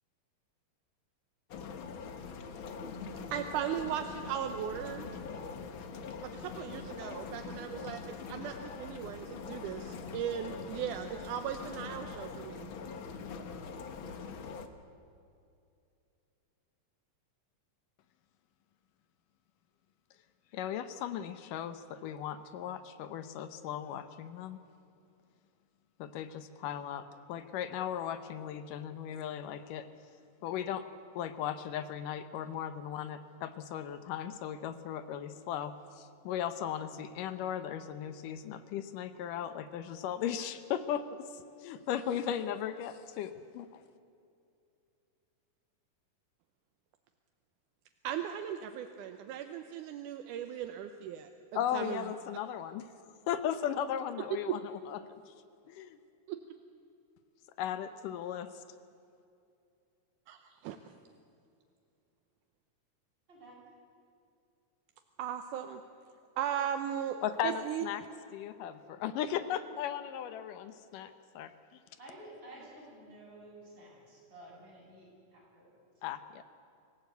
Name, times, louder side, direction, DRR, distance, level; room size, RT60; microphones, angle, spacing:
sound 1, 1.5-14.7, left 5 dB, 65° left, 1.3 m, -43 dB
voice 1, 3.3-5.1 6.2-12.7 48.0-51.3 51.7-52.0 56.3-56.4 60.3-60.8 65.2-65.8 66.4-67.2 67.4-67.8, right 9 dB, 75° right, 7 dB, 2.2 m, -37 dB
voice 2, 20.5-24.6 26.0-27.0 27.3-29.9 30.4-30.8 31.2-41.2 41.6-43.8 51.5-52.9 53.3-55.3 55.7-56.0 57.6-58.6 67.2-68.0 68.3-71.1 71.4-71.5 76.0-76.4, left 9 dB, 80° left, 11 dB, 2.4 m, -37 dB
voice 3, 63.3-63.6 72.0-75.7, right 1 dB, 30° right, -5 dB, 8.5 m, -52 dB
25.5 x 16.5 x 8.2 m, 2.5 s
omnidirectional pair, 3.8 m